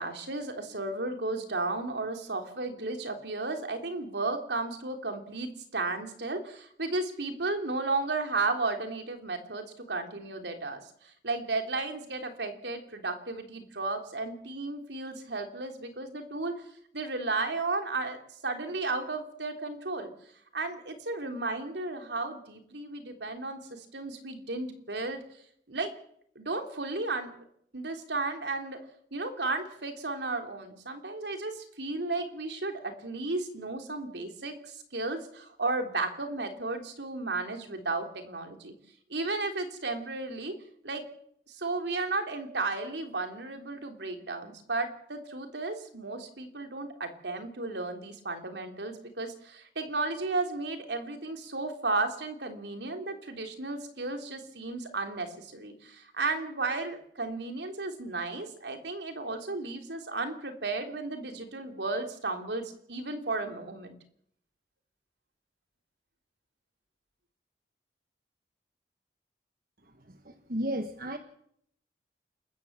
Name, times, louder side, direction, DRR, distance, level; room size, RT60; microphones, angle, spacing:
voice 1, 0.0-16.5 16.9-18.2 18.4-20.1 20.5-25.2 25.7-25.9 26.3-27.4 27.7-28.8 29.1-38.7 39.1-40.5 40.8-41.0 41.5-64.0, right 3 dB, 80° right, 5 dB, 3.3 m, -34 dB
voice 2, 69.8-71.2, equal, 55° right, 6 dB, 1.5 m, -34 dB
29.5 x 14.0 x 7.5 m, 0.70 s
head